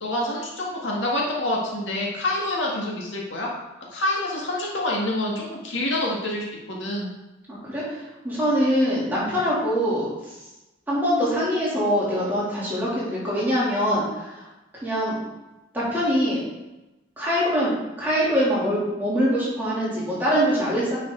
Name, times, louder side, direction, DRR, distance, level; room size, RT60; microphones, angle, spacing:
voice 1, 0.0-3.5 3.9-7.1, left 1 dB, 70° left, -3 dB, 1.8 m, -27 dB
voice 2, 7.5-10.1 10.9-14.5 14.8-15.2 15.7-16.4 17.2-17.7 18.0-21.0, equal, 10° right, -8 dB, 2.9 m, -23 dB
9.8 x 5.6 x 3.9 m, 1.0 s
head